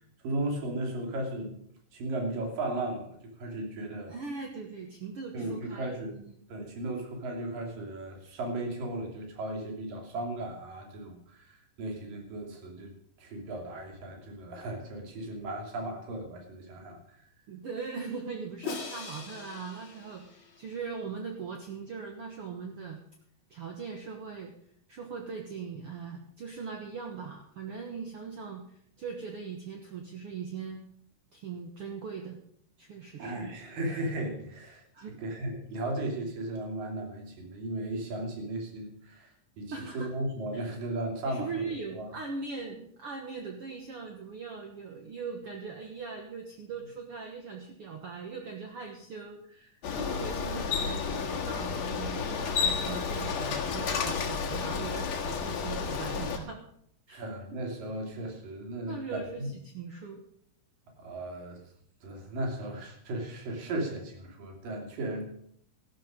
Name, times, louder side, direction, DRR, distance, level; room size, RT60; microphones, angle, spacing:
voice 1, 0.2-1.6 1.9-4.1 5.3-6.2 6.5-12.9 13.2-17.0 33.2-42.1 57.1-59.5 61.0-61.6 62.0-65.2, right 1 dB, 85° right, 2 dB, 4.6 m, -36 dB
voice 2, 4.1-6.3 17.5-23.0 23.5-24.5 24.9-30.8 31.3-32.4 32.8-33.5 34.9-35.2 39.7-40.1 40.5-40.7 41.2-56.6 57.1-57.2 58.9-60.2, right 5 dB, 55° right, 3 dB, 1.8 m, -40 dB
Crash cymbal, 18.6-20.8, left 5 dB, 40° left, 3.0 m, -41 dB
Bicycle, 49.8-56.4, left 6 dB, 60° left, 2.7 m, -31 dB
13.5 x 12.5 x 5.1 m, 0.68 s
omnidirectional pair, 3.8 m